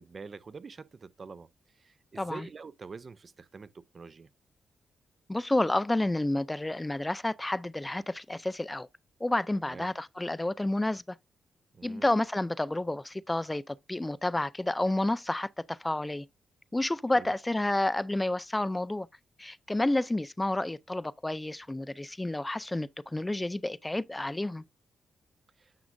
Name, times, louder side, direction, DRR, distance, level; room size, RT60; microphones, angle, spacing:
voice 1, 0.0-1.5 1.7-4.3 9.5-9.9 11.7-12.1 17.1-17.3 25.6-25.7, right 5 dB, 45° right, 0.6 m, -46 dB
voice 2, 5.3-8.9 9.2-11.2 11.8-16.3 16.7-19.1 19.4-24.6, left 1 dB, 15° left, 0.4 m, -30 dB
9.4 x 6.1 x 2.6 m
cardioid pair, 85°, 0 cm